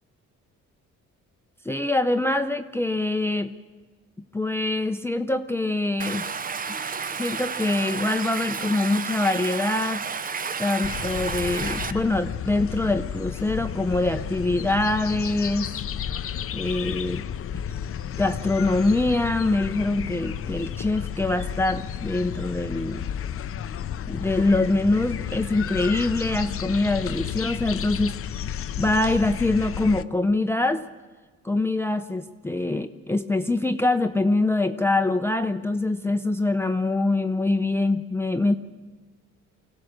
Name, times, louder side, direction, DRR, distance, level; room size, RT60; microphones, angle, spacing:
voice 1, 1.6-3.5 4.3-6.2 7.2-10.0 10.6-15.7 16.5-17.2 18.2-23.1 24.1-28.1 28.8-30.8 31.4-38.5, left 2 dB, 10° left, 8 dB, 0.7 m, -24 dB
Stream, 6.0-11.9, right 5 dB, 30° right, 0.7 m, -31 dB
sound 1, 10.8-30.0, left 9 dB, 45° left, 0.6 m, -32 dB
24.0 x 16.5 x 6.6 m, 1.4 s
cardioid pair, 90°, 30 cm